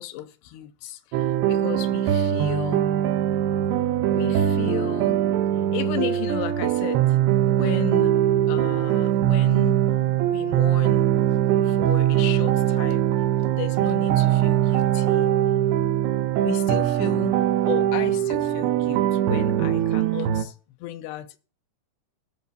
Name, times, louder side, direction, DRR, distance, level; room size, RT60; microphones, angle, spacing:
voice 1, 0.0-2.9 4.1-5.2 5.7-7.0 7.5-8.2 8.5-9.8 10.2-11.1 11.7-13.1 13.5-15.3 16.4-17.4 17.7-20.5 20.8-21.4, left 14 dB, 85° left, 2.8 m, -34 dB
sound 1, 1.1-20.5, right 12 dB, 90° right, 2.8 m, -22 dB
17.0 x 6.6 x 4.0 m
omnidirectional pair, 4.7 m